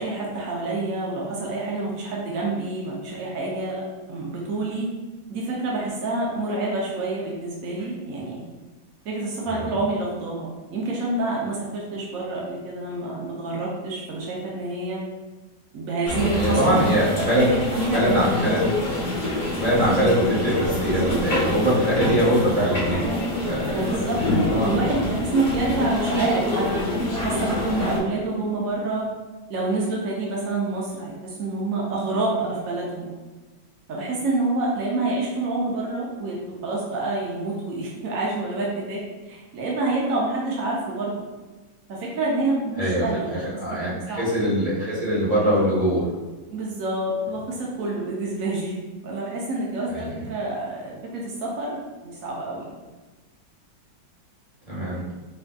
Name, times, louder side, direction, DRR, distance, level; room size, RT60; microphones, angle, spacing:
voice 1, 0.0-4.9 5.3-8.4 9.0-15.0 15.7-16.9 17.4-17.5 17.7-18.4 23.7-24.2 24.5-26.7 27.1-29.1 29.5-33.1 33.9-41.1 41.9-43.4 43.7-43.8 44.1-44.2 46.5-48.8 49.0-52.7, right 2 dB, 70° right, -3 dB, 0.8 m, -27 dB
sound 1, 16.1-28.0, left 1 dB, 40° left, 0.8 m, -27 dB
voice 2, 16.3-17.5 17.9-18.7 19.5-23.0 23.5-24.0 24.3-24.7 42.8-46.1 49.9-50.1 54.7-55.0, equal, 25° right, -9 dB, 1.0 m, -22 dB
sound 2, 22.7-22.8 24.1-27.2 28.7-29.0, left 2 dB, 70° left, 1.0 m, -29 dB
4.9 x 2.5 x 2.2 m, 1.2 s
omnidirectional pair, 2.1 m